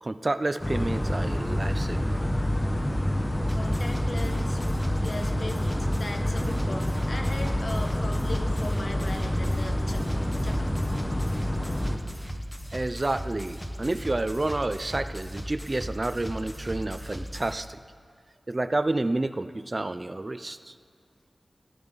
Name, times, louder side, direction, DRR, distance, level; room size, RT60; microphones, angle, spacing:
voice 1, 0.0-2.1 12.7-17.8 18.5-20.7, right 2 dB, 35° right, 12 dB, 0.5 m, -29 dB
sound 1, 0.6-12.0, equal, 25° left, 1.4 m, -27 dB
voice 2, 3.5-4.6 5.0-10.7, left 2 dB, 60° left, 4 dB, 1.4 m, -39 dB
sound 2, 3.5-17.5, equal, 5° left, 1.1 m, -37 dB
20.5 x 14.5 x 4.0 m, 2.1 s
wide cardioid pair, 75°, 0 cm